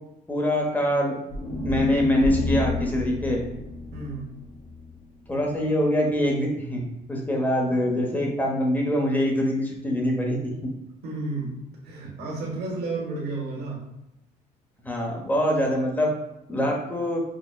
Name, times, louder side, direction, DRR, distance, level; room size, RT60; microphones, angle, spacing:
voice 1, 0.3-1.1 1.6-3.4 5.3-6.8 7.1-10.5 14.8-16.1 16.5-17.2, left 1 dB, 10° left, -1 dB, 0.9 m, -24 dB
sound 1, 1.3-5.5, left 1 dB, 30° left, 1.3 m, -31 dB
voice 2, 3.9-4.3 11.0-11.5 11.8-13.8, right 3 dB, 70° right, -3 dB, 1.3 m, -32 dB
6.0 x 2.2 x 2.2 m, 0.88 s
cardioid pair, 110°, 17 cm